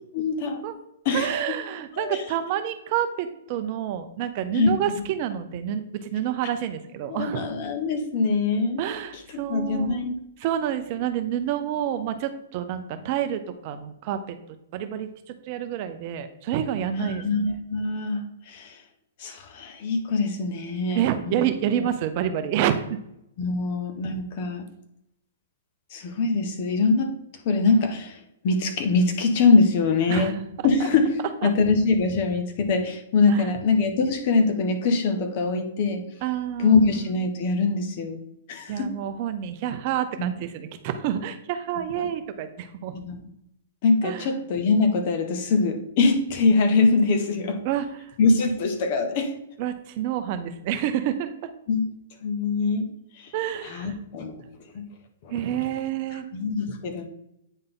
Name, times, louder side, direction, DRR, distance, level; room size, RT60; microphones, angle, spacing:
voice 1, 0.1-0.6 1.0-1.4 1.9-2.2 4.5-5.0 7.1-8.9 9.3-10.1 17.0-18.8 19.2-21.4 23.4-24.6 25.9-27.1 27.4-28.2 28.4-30.3 30.6-36.0 36.6-38.2 38.5-38.9 40.2-40.4 42.0-42.1 42.9-43.2 43.8-47.6 48.2-49.4 51.7-51.9 52.2-52.9 53.2-53.3 53.6-54.4 54.7-54.9 55.2-55.3 56.3-57.0, left 4 dB, 45° left, 6 dB, 1.2 m, -23 dB
voice 2, 1.1-7.4 8.8-10.1 10.4-14.4 14.7-17.2 20.9-23.0 30.1-30.4 31.4-31.5 33.3-33.5 36.2-37.0 38.7-43.0 44.0-44.3 47.6-47.9 49.6-51.5 53.3-53.9 55.3-56.2, right 10 dB, 40° right, 9 dB, 0.6 m, -28 dB
8.9 x 4.0 x 3.8 m, 0.80 s
hypercardioid pair, 150°, 0 cm